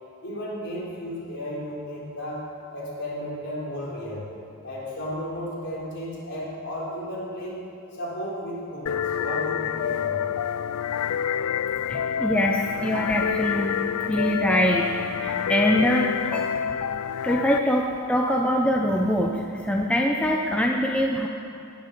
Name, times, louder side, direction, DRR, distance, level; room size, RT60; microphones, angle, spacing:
voice 1, 0.2-4.3 4.6-7.6 7.9-10.4, equal, 50° left, -6 dB, 4.2 m, -34 dB
sound 1, 8.9-17.6, left 8 dB, 85° left, 0.3 m, -27 dB
voice 2, 11.9-16.5 17.2-21.3, equal, 5° left, 0 dB, 0.6 m, -24 dB
18.5 x 7.5 x 6.9 m, 2.6 s
head